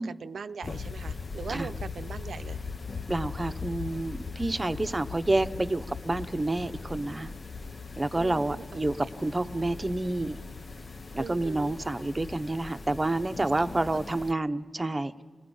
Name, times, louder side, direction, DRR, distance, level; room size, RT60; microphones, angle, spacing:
voice 1, 0.0-2.6 8.2-8.6 11.2-11.7 13.6-14.0, right 5 dB, 85° right, 10 dB, 0.5 m, -40 dB
sound 1, 0.6-14.3, left 4 dB, 50° left, 0.5 m, -39 dB
voice 2, 3.1-7.3 8.0-10.4 11.1-15.2, right 2 dB, 25° right, 8 dB, 0.8 m, -29 dB
29.5 x 20.0 x 5.4 m, 1.5 s
cardioid pair, 65°, 0 cm